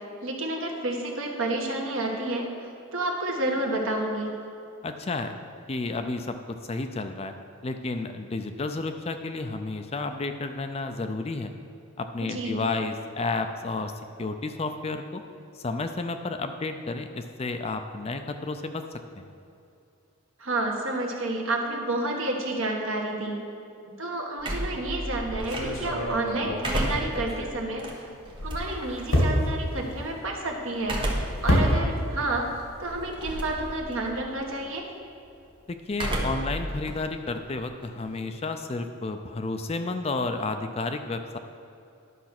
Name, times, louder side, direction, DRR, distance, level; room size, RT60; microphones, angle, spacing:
voice 1, 0.2-4.3 12.2-12.6 20.4-23.4 23.9-28.1 28.4-31.0 31.4-32.5 32.8-34.9, right 2 dB, 65° right, 1 dB, 1.4 m, -30 dB
voice 2, 4.8-5.3 5.7-7.3 7.6-11.5 12.0-13.9 14.2-15.2 15.6-18.8 19.2-19.3 35.7-41.4, left 3 dB, 30° left, 7 dB, 0.4 m, -31 dB
sound 1, 24.4-26.0 26.4-29.0 30.8-31.5 32.0-32.1 33.1-33.6 33.9-34.4 35.9-36.6 36.9-38.3, right 1 dB, 20° right, 1.1 m, -31 dB
sound 2, 25.1-27.8 28.2-32.3 32.5-33.8, equal, 75° left, 2.3 m, -28 dB
11.0 x 5.8 x 5.9 m, 2.6 s
head